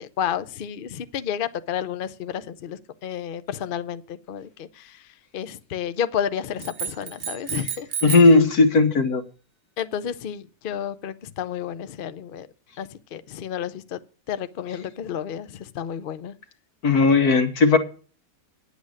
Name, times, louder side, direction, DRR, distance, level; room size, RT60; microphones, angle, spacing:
voice 1, 0.0-5.0 5.3-7.9 9.8-12.5 12.8-14.0 14.3-16.3, left 9 dB, 55° left, 12 dB, 0.6 m, -31 dB
sound 1, 6.6-8.4, right 8 dB, 55° right, 1.2 m, -32 dB
voice 2, 8.0-9.2 16.8-17.8, left 3 dB, 75° left, 7 dB, 1.8 m, -16 dB
9.8 x 8.1 x 6.4 m, 0.38 s
omnidirectional pair, 1.6 m